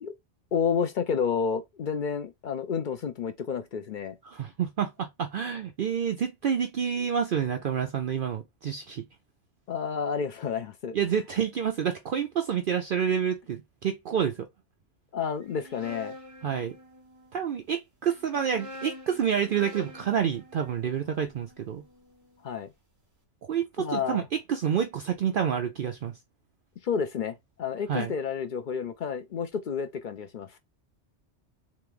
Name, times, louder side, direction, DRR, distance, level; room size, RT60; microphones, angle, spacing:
voice 1, 0.5-4.2 9.7-10.9 15.1-16.2 22.4-22.7 23.8-24.3 26.8-30.6, left 6 dB, 55° left, 0.6 m, -30 dB
voice 2, 4.2-9.0 10.9-14.5 16.4-16.8 17.3-21.8 23.4-24.2 24.5-26.2 27.9-28.1, right 8 dB, 60° right, 0.6 m, -28 dB
sound 1, 15.4-17.3 18.1-22.3, left 1 dB, 15° right, 1.1 m, -46 dB
3.4 x 3.1 x 3.7 m
omnidirectional pair, 1.2 m